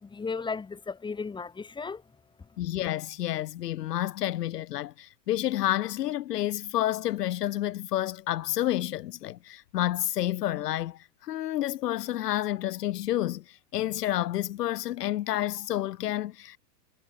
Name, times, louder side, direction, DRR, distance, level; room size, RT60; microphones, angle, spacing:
voice 1, 0.0-2.0, left 5 dB, 10° left, 3.6 m, -35 dB
voice 2, 2.6-16.6, left 13 dB, 70° left, 1.9 m, -30 dB
hypercardioid pair, 145°, 49 cm